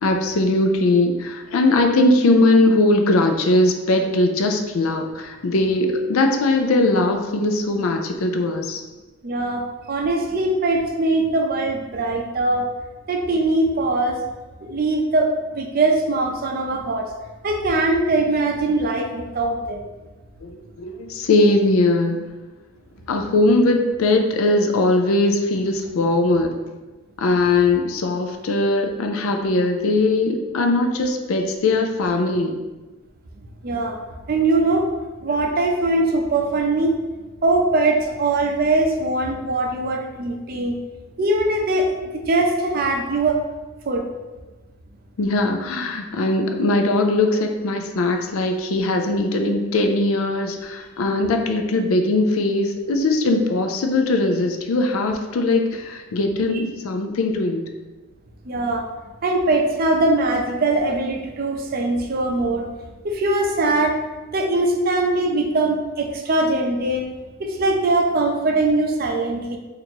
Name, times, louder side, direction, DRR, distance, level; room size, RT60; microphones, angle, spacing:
voice 1, 0.0-8.8 20.4-22.2 23.1-26.5 27.2-32.6 45.2-57.6, left 2 dB, 85° left, 4 dB, 0.4 m, -20 dB
voice 2, 9.2-12.7 13.1-14.2 14.6-17.1 17.4-19.8 33.6-34.0 34.3-34.9 35.2-36.9 37.4-40.8 41.2-43.4 43.9-44.1 58.5-58.8 59.2-62.7 63.0-64.0 64.3-67.1 67.4-69.6, right 2 dB, 45° right, 3 dB, 0.5 m, -21 dB
2.9 x 2.5 x 4.3 m, 1.2 s
head